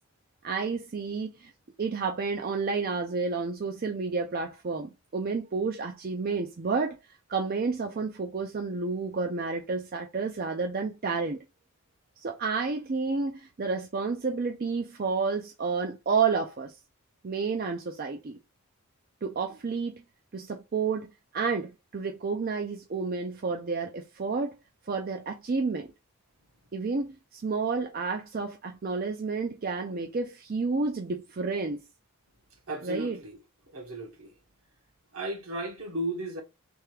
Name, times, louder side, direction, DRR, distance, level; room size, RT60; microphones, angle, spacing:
voice 1, 0.4-1.5 1.8-7.0 7.3-11.4 12.2-16.7 17.2-18.4 19.2-20.0 20.3-24.6 24.9-25.9 26.7-31.8 32.8-33.2, right 4 dB, 40° right, 0.4 m, -30 dB
voice 2, 32.7-33.4 33.7-34.3 35.1-36.4, right 1 dB, 65° right, 1.4 m, -35 dB
3.5 x 3.3 x 3.2 m
head